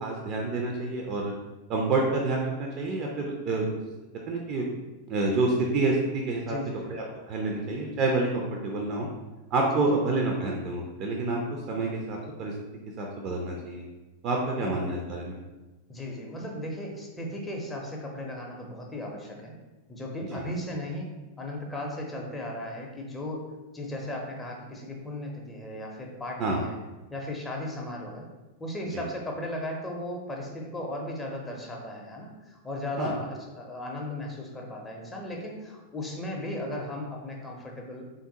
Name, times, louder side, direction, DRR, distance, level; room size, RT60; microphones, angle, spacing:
voice 1, 0.0-1.3 1.7-3.7 4.3-4.6 5.1-6.6 6.9-9.1 9.5-11.4 11.7-12.5 13.0-13.8 14.2-15.4 20.3-20.4 26.4-26.6 28.9-29.0 33.0-33.1, right 2 dB, 35° right, 0 dB, 0.4 m, -28 dB
voice 2, 6.4-6.9 9.7-9.8 14.6-14.7 15.9-19.5 19.9-21.1 21.4-23.4 23.7-26.8 27.1-28.3 28.6-38.1, left 1 dB, 15° left, -1 dB, 0.6 m, -36 dB
3.5 x 2.5 x 2.7 m, 1.1 s
figure-of-eight pair, 90°, 0 cm